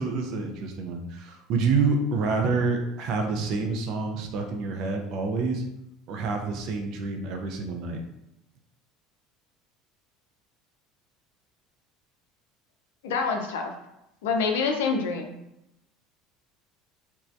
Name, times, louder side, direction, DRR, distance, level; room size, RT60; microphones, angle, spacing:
voice 1, 0.0-5.7 6.1-8.0, right 4 dB, 55° right, 3 dB, 0.5 m, -27 dB
voice 2, 13.0-13.7 14.2-15.4, left 4 dB, 65° left, 3 dB, 0.4 m, -26 dB
3.0 x 2.2 x 2.5 m, 0.86 s
figure-of-eight pair, 65°, 0 cm